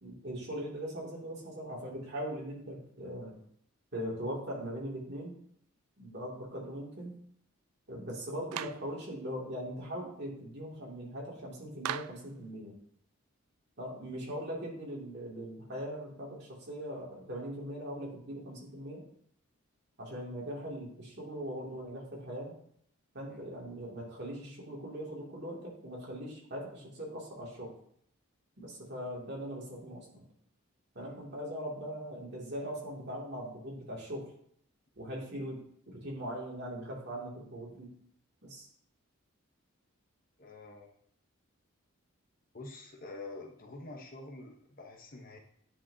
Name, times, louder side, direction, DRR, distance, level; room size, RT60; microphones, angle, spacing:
voice 1, 0.0-3.3 3.9-5.3 6.0-7.1 7.9-12.8 13.8-19.0 20.0-22.6 23.1-27.7 28.6-30.2 30.9-34.3 35.0-37.9 38.4-38.7, equal, 50° right, -4 dB, 2.4 m, -40 dB
Clapping, 8.5-8.9 11.8-12.3, right 11 dB, 85° right, 0.3 m, -37 dB
voice 2, 40.4-40.9 42.5-45.4, left 2 dB, 40° left, 2 dB, 0.9 m, -47 dB
9.8 x 5.7 x 2.7 m, 0.67 s
head